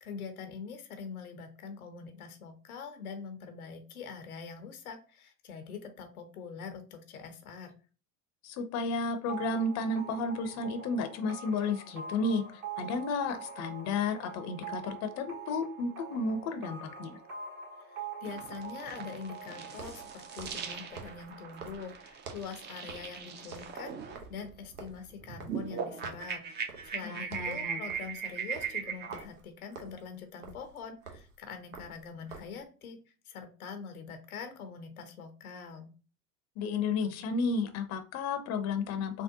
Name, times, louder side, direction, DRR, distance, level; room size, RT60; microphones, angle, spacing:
voice 1, 0.0-7.7 17.9-23.9 24.3-33.0 33.3-35.9, left 6 dB, 90° left, 7 dB, 0.7 m, -44 dB
voice 2, 8.4-17.2 27.0-27.8 36.6-39.2, left 3 dB, 40° left, 8 dB, 0.6 m, -32 dB
sound 1, 9.3-22.8, right 6 dB, 45° right, 1.3 m, -45 dB
sound 2, 16.4-16.5 19.7-22.6 22.9-23.2 23.4-25.8 26.0-26.3 26.7-27.0 27.2-32.6, right 5 dB, 85° right, 0.8 m, -49 dB
sound 3, 18.2-29.2, right 7 dB, 25° right, 0.5 m, -40 dB
3.5 x 2.2 x 2.6 m, 0.35 s
hypercardioid pair, 80°, 42 cm